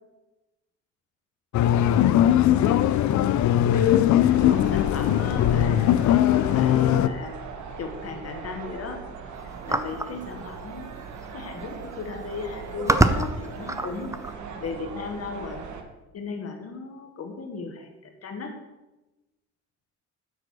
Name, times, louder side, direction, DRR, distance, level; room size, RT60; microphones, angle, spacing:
sound 1, 1.5-7.1, left 11 dB, 70° left, 0.5 m, -20 dB
voice 1, 1.8-3.1 3.7-7.4 7.8-9.0 9.7-10.9 11.3-15.6 16.1-18.6, left 4 dB, 55° left, 4 dB, 1.3 m, -36 dB
sound 2, 4.3-15.8, right 5 dB, 70° right, 1.3 m, -39 dB
sound 3, 9.7-10.1 11.2-11.3 11.6-11.9 12.5-14.3, right 2 dB, 10° right, 0.6 m, -24 dB
7.8 x 6.1 x 6.1 m, 1.0 s
cardioid pair, 90°, 30 cm